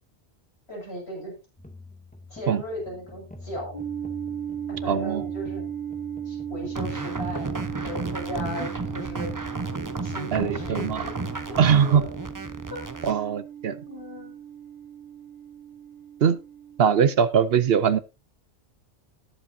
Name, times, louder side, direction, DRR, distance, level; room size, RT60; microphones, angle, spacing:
voice 1, 0.7-1.3 2.3-3.8 4.7-5.7 6.2-9.3 10.0-12.2 12.7-13.2 13.8-14.4, equal, 70° left, -2 dB, 6.8 m, -37 dB
sound 1, 1.6-12.6, left 3 dB, 5° left, 2.1 m, -45 dB
sound 2, 3.7-17.2, right 9 dB, 40° left, 3.9 m, -37 dB
voice 2, 4.8-5.2 10.3-11.0 11.6-12.0 13.0-13.8 16.2-16.4 16.8-18.0, right 7 dB, 65° right, 15 dB, 0.9 m, -21 dB
sound 3, 6.8-13.2, right 3 dB, 20° right, 0.8 m, -33 dB
18.5 x 7.6 x 2.7 m, 0.27 s
omnidirectional pair, 1.1 m